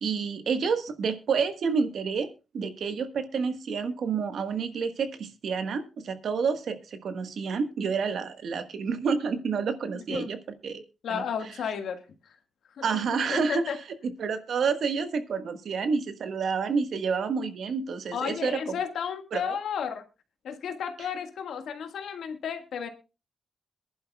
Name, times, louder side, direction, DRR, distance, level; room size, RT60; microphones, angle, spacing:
voice 1, 0.0-2.3 2.5-10.8 11.1-11.2 12.8-13.6 14.2-18.7 19.3-19.6, right 5 dB, 75° right, 9 dB, 1.3 m, -29 dB
voice 2, 9.9-10.3 11.0-12.4 12.7-13.8 18.1-20.1 20.4-22.9, left 7 dB, 80° left, 7 dB, 1.6 m, -33 dB
22.0 x 11.0 x 2.3 m, 0.29 s
cardioid pair, 65°, 0 cm